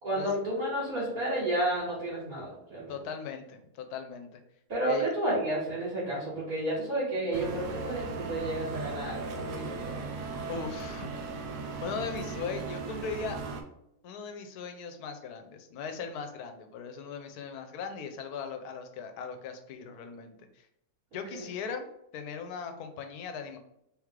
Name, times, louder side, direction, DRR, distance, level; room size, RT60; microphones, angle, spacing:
voice 1, 0.0-2.9 4.7-10.0 21.3-21.5, right 1 dB, 65° right, -7 dB, 1.9 m, -31 dB
voice 2, 2.9-4.4 4.8-5.1 10.5-11.1 11.8-13.4 14.0-20.4 21.1-21.8 22.1-23.6, left 6 dB, 85° left, 6 dB, 1.1 m, -38 dB
sound 1, 7.3-13.6, right 4 dB, 85° right, 1.2 m, -37 dB
3.4 x 3.2 x 3.5 m, 0.82 s
omnidirectional pair, 1.6 m